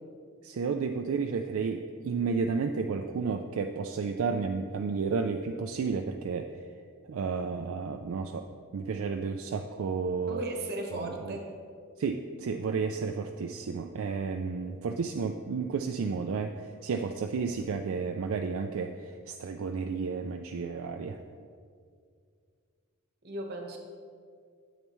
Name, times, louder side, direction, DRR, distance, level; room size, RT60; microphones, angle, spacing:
voice 1, 0.4-6.5 7.1-8.4 8.7-10.4 11.0-11.1 12.0-21.2, right 5 dB, 70° right, 5 dB, 0.4 m, -32 dB
voice 2, 10.3-11.4 16.9-17.0 23.2-23.8, right 2 dB, 50° right, 2 dB, 1.2 m, -36 dB
8.8 x 8.2 x 3.1 m, 2.2 s
head